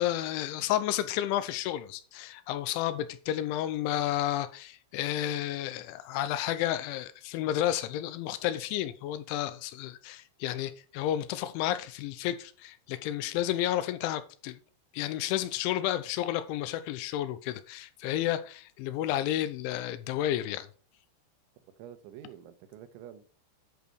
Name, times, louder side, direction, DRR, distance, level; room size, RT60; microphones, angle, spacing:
voice 1, 0.0-14.6 14.9-20.7, left 12 dB, 90° left, 3.1 m, -31 dB
voice 2, 21.8-23.3, right 10 dB, 80° right, 3.2 m, -47 dB
10.5 x 5.1 x 4.6 m
omnidirectional pair, 5.4 m